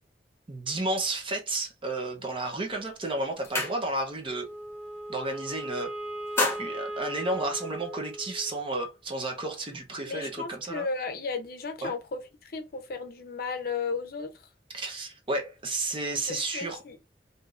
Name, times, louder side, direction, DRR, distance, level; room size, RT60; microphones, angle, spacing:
voice 1, 0.5-4.5 5.1-5.9 6.6-10.9 11.8-11.9 14.7-16.8, right 2 dB, 30° right, 0.7 m, -32 dB
sound 1, 2.5-2.8 3.1-4.3 4.6-4.9 5.2-5.7 6.1-7.9, left 2 dB, 15° left, 1.1 m, -33 dB
Wind instrument woodwind instrument, 4.3-8.7, right 1 dB, 5° right, 1.3 m, -38 dB
voice 2, 10.1-14.5 16.3-17.0, left 4 dB, 60° left, 0.6 m, -34 dB
3.5 x 2.7 x 2.4 m
head